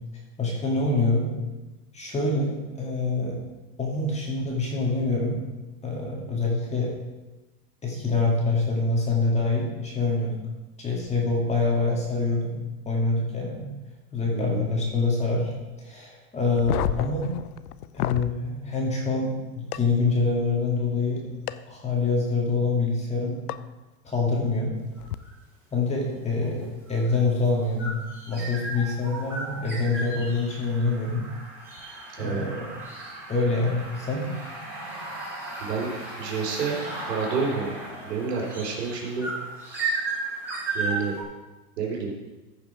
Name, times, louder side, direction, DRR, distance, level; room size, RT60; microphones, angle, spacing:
voice 1, 0.4-1.3 1.9-3.4 3.8-5.4 5.8-6.9 7.8-10.3 10.8-12.6 12.8-13.6 14.1-15.5 15.8-17.3 17.9-21.2 21.7-23.4 24.0-24.7 25.7-27.9 28.3-31.2 32.2-32.7 33.3-34.3, left 3 dB, 15° left, -2 dB, 2.2 m, -25 dB
voice 2, 14.3-14.6 32.2-32.5 35.6-35.9 36.2-36.8 37.0-37.7 38.1-39.3 40.7-41.2 41.8-42.1, right 5 dB, 80° right, -1 dB, 3.9 m, -29 dB
sound 1, 16.5-18.3 19.7-19.8 21.5-21.6 23.5-23.6 25.0-25.1, left 13 dB, 70° left, 0.6 m, -30 dB
sound 2, 25.0-25.3 26.4-41.2, right 2 dB, 5° right, 3.4 m, -35 dB
14.5 x 5.7 x 4.9 m, 1.1 s
supercardioid pair, 140°, 47 cm